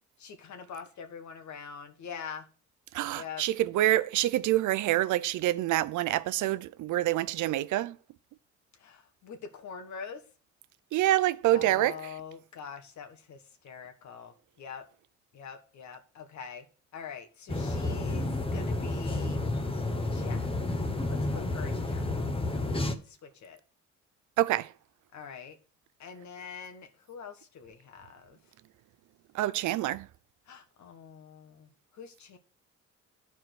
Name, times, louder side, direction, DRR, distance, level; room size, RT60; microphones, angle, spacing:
voice 1, 0.2-2.5 3.1-3.4 8.7-10.2 11.5-14.8 15.3-16.7 16.9-19.4 20.1-20.6 21.1-23.6 25.1-25.6 26.0-28.4 30.5-32.4, left 6 dB, 70° left, 1.7 m, -44 dB
voice 2, 2.9-8.0 10.9-12.0 24.4-24.7 29.3-30.1, right 15 dB, 80° right, 0.6 m, -26 dB
sound 1, 17.5-22.9, left 2 dB, 20° left, 1.2 m, -30 dB
11.5 x 4.6 x 6.1 m
cardioid pair, 90°, 30 cm